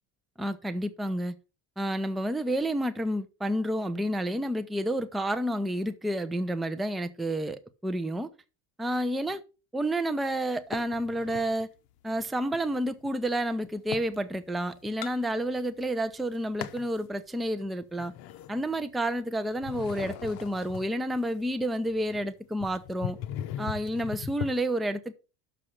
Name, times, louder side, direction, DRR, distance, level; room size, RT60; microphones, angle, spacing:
voice 1, 0.4-1.4 1.8-8.3 8.8-9.4 9.7-11.7 12.0-18.1 18.5-23.2 23.6-25.1, right 1 dB, ahead, 0.4 m, -30 dB
sound 1, 10.7-11.6 12.1-14.2 14.6-15.9 16.1-17.0 17.5-19.2 19.5-24.5, left 11 dB, 70° left, 0.9 m, -40 dB
6.5 x 5.8 x 6.4 m
cardioid pair, 135°, 37 cm